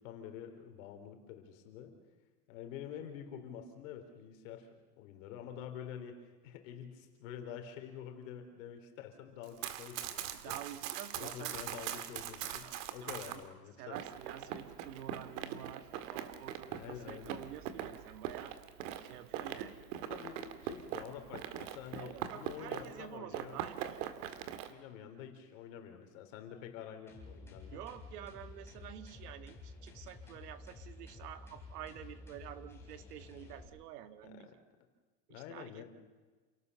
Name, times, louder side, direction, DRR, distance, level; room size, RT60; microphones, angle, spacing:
voice 1, 0.0-1.9 2.5-4.7 5.0-6.2 6.4-10.6 11.2-14.0 16.7-17.4 20.0-23.6 24.7-27.8 34.2-34.5 35.3-35.8, left 9 dB, 55° left, 5 dB, 3.9 m, -47 dB
Run, 9.4-13.4 14.0-23.0 23.3-24.7, right 10 dB, 55° right, 1.8 m, -42 dB
voice 2, 10.4-11.6 12.4-13.4 13.8-18.5 19.0-19.8 21.9-24.0 27.7-34.5 35.3-35.8, right 11 dB, 70° right, 10 dB, 1.8 m, -49 dB
sound 1, 27.1-33.6, left 3 dB, 5° left, 3.9 m, -51 dB
28.5 x 18.0 x 6.9 m, 1.3 s
supercardioid pair, 175°, 48 cm